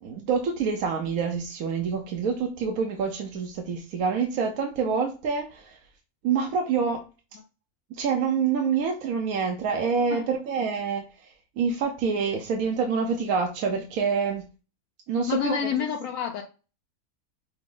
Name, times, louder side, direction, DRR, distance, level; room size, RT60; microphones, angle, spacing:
voice 1, 0.0-5.8 6.2-7.0 7.9-14.4 15.1-15.6, right 5 dB, 70° right, 2 dB, 1.1 m, -27 dB
voice 2, 15.3-16.4, left 8 dB, 70° left, 2 dB, 0.9 m, -28 dB
5.9 x 2.2 x 3.6 m, 0.33 s
omnidirectional pair, 1.6 m